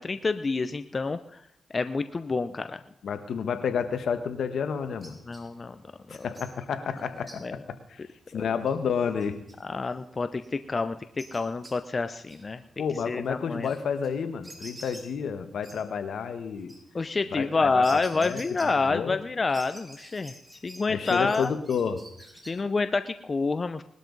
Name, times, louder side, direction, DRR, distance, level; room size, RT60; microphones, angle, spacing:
voice 1, 0.0-1.4 1.7-2.8 5.3-5.8 6.2-6.3 7.4-7.6 8.3-8.5 9.6-12.6 13.1-13.7 16.9-21.5 22.4-23.8, left 3 dB, 40° left, 10 dB, 0.7 m, -28 dB
voice 2, 3.0-5.2 6.1-8.0 8.3-9.4 12.8-16.7 17.3-19.2 20.9-22.0 22.6-22.7, left 6 dB, 75° left, 10 dB, 1.3 m, -30 dB
sound 1, 4.7-19.2 19.5-22.5, right 1 dB, 20° right, 5.3 m, -50 dB
20.0 x 12.0 x 4.0 m, 0.78 s
cardioid pair, 70°, 0 cm